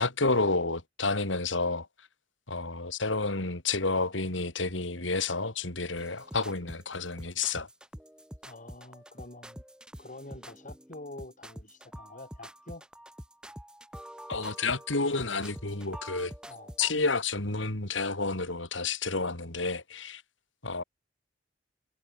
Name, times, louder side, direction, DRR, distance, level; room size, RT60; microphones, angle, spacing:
voice 1, 0.0-1.9 2.5-7.7 14.3-16.3 16.8-20.2 20.6-20.8, left 3 dB, 80° left, 3.6 m, -30 dB
sound 1, 6.0-16.9, equal, 5° right, 6.7 m, -46 dB
voice 2, 8.4-9.6 10.0-12.9 16.5-16.8, left 2 dB, 45° left, 6.7 m, -46 dB
head